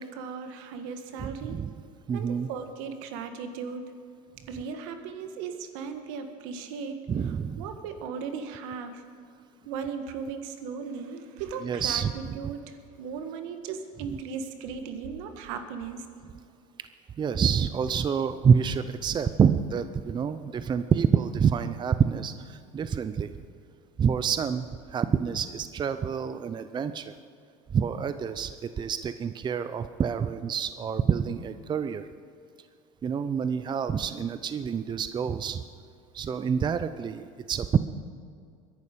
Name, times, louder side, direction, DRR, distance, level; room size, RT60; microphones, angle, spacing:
voice 1, 0.0-1.6 2.1-3.8 4.5-9.0 9.6-16.0, right 6 dB, 75° right, 7 dB, 1.6 m, -37 dB
voice 2, 1.2-1.7 2.1-2.5 7.1-7.6 11.6-12.4 17.2-23.3 24.0-27.1 27.7-32.1 33.0-35.6 36.1-37.8, right 7 dB, 30° right, 11 dB, 0.6 m, -27 dB
21.5 x 11.0 x 5.3 m, 2.3 s
supercardioid pair, 95°, 16 cm